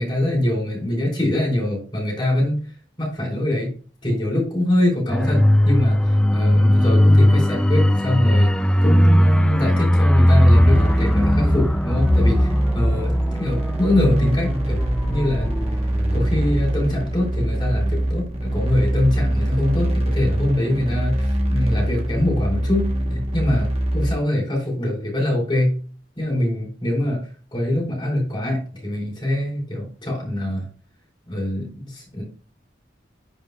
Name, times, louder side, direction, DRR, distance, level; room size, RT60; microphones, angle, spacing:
voice 1, 0.0-2.6 3.0-3.7 4.0-8.5 8.8-14.8 15.1-15.5 16.1-25.8 26.2-27.2 27.5-30.7 31.3-32.2, left 1 dB, 25° left, -5 dB, 3.4 m, -23 dB
sound 1, 5.1-17.4 17.7-17.9, left 1 dB, 5° left, 0.3 m, -18 dB
sound 2, 10.5-24.1, right 1 dB, 30° right, 1.1 m, -23 dB
11.0 x 5.0 x 2.3 m, 0.40 s
head